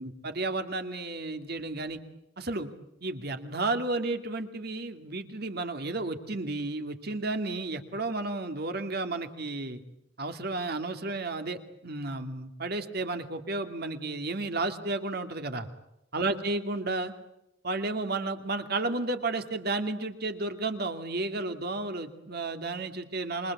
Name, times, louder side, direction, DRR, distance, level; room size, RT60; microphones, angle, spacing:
voice 1, 0.0-2.0 2.4-2.7 3.0-9.8 10.2-15.7 16.1-17.1 17.6-23.5, right 2 dB, 60° right, 7 dB, 2.5 m, -32 dB
27.5 x 24.0 x 8.5 m, 0.82 s
head